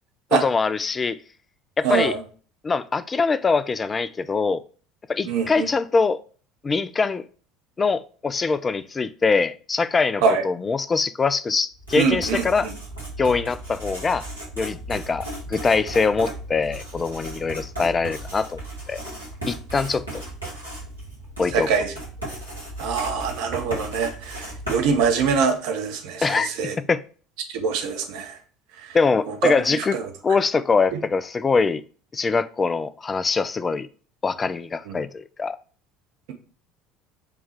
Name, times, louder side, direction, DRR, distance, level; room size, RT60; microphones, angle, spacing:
voice 1, 0.3-1.2 1.8-2.1 2.6-4.6 5.1-6.2 6.6-7.2 7.8-12.7 13.2-14.2 14.6-18.6 18.9-19.0 19.5-20.2 21.4-21.7 26.2-26.5 26.9-27.0 28.9-30.0 30.2-31.8 32.1-33.9 34.2-35.6, left 4 dB, 25° left, 0.3 m, -23 dB
voice 2, 1.8-2.2 5.2-5.7 10.2-10.4 11.9-12.7 21.5-21.9 22.8-26.8 27.5-28.4 28.8-29.0 29.3-30.1 30.9-31.0 34.9-35.0, right 5 dB, 55° right, 0.8 m, -24 dB
Writing, 11.7-25.6, right 1 dB, 90° left, 1.9 m, -36 dB
5.2 x 2.3 x 4.4 m
figure-of-eight pair, 65°, 0 cm